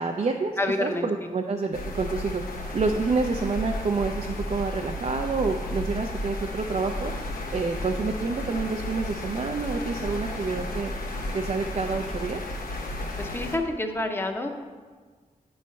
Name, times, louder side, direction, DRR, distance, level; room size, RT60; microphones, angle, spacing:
voice 1, 0.0-0.5 0.8-2.4 2.7-7.1 7.5-10.9 11.3-12.4, right 4 dB, 50° right, 2 dB, 0.5 m, -28 dB
voice 2, 0.6-1.1 13.2-14.6, left 2 dB, 15° left, 4 dB, 0.7 m, -28 dB
sound 1, 1.7-13.6, left 1 dB, 85° left, 0.9 m, -33 dB
8.8 x 3.2 x 5.5 m, 1.5 s
cardioid pair, 75°, 15 cm